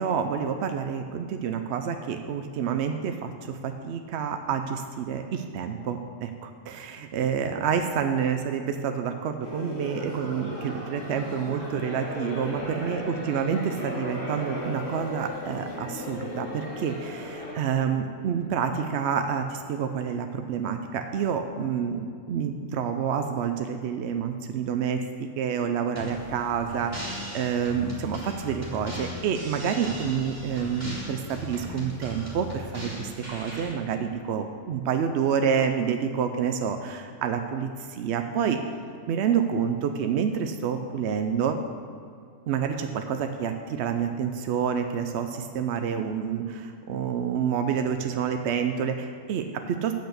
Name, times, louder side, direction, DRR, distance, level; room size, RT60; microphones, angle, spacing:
voice 1, 0.0-25.0 25.4-38.6 39.1-41.6 42.5-49.9, right 7 dB, 65° right, 6 dB, 0.7 m, -28 dB
sound 1, 9.4-17.5, left 1 dB, 75° left, 2.2 m, -36 dB
sound 2, 26.0-33.7, equal, 10° right, 2.7 m, -38 dB
8.5 x 6.1 x 6.7 m, 2.4 s
omnidirectional pair, 1.4 m